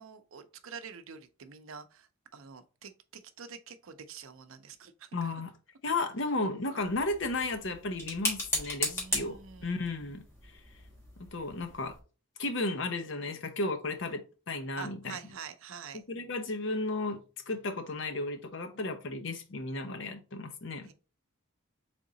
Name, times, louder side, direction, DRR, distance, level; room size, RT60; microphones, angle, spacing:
voice 1, 0.0-5.4 6.3-6.4 6.6-6.8 8.8-9.8 14.8-16.0 20.8-20.9, right 6 dB, 75° right, 0.6 m, -47 dB
voice 2, 5.1-5.5 5.8-10.2 11.2-12.0 12.4-14.2 14.5-15.2 16.1-17.2 17.5-20.9, left 2 dB, 60° left, 0.7 m, -34 dB
sound 1, 6.8-12.0, equal, 10° left, 1.4 m, -37 dB
3.8 x 3.5 x 3.9 m
head